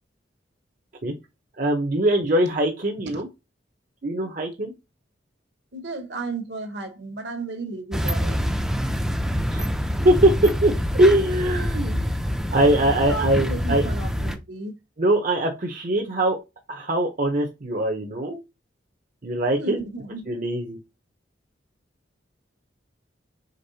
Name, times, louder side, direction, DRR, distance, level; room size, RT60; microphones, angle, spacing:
voice 1, 1.6-3.3 4.0-4.7 9.5-9.6 10.0-10.3 10.6-12.0 12.5-13.8 15.0-16.4 16.7-18.4 19.2-19.8 20.3-20.8, right 1 dB, 45° right, 0.8 m, -22 dB
voice 2, 5.7-8.4 13.1-14.7 19.6-20.2, right 3 dB, 65° right, 1.2 m, -33 dB
sound 1, 7.9-14.4, equal, 5° right, 0.4 m, -25 dB
5.2 x 3.6 x 2.7 m
head